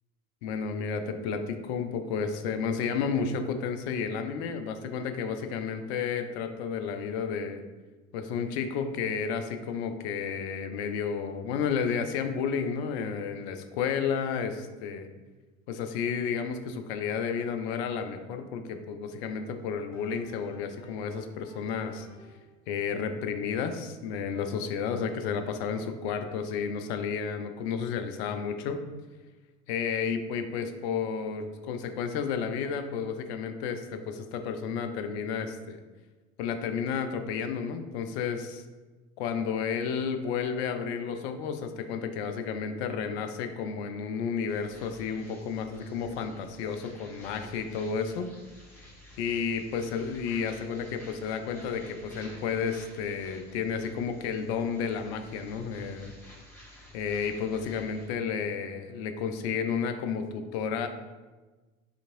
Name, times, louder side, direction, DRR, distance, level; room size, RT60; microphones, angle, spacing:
voice 1, 0.4-7.6 8.1-15.1 15.7-22.1 22.7-28.8 29.7-35.8 36.4-38.6 39.2-48.3 49.2-56.1 56.9-60.9, left 6 dB, 50° left, 7 dB, 0.5 m, -32 dB
sound 1, 19.3-22.6, left 2 dB, 70° left, 1.2 m, -54 dB
sound 2, 44.5-58.1, left 1 dB, 5° left, 1.1 m, -52 dB
5.0 x 2.9 x 2.5 m, 1.3 s
figure-of-eight pair, 75°, 42 cm